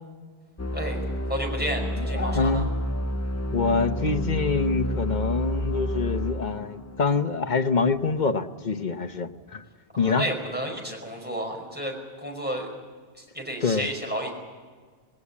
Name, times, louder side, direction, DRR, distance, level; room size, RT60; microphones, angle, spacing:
sound 1, 0.6-8.1, equal, 15° left, 0.7 m, -30 dB
voice 1, 1.3-2.7 9.9-12.7 13.2-14.3, right 1 dB, 10° right, 1 dB, 5.2 m, -32 dB
voice 2, 2.0-2.7 3.5-9.6 10.0-10.2 13.6-13.9, left 4 dB, 50° left, 8 dB, 1.1 m, -25 dB
19.0 x 18.5 x 8.5 m, 1.5 s
omnidirectional pair, 1.0 m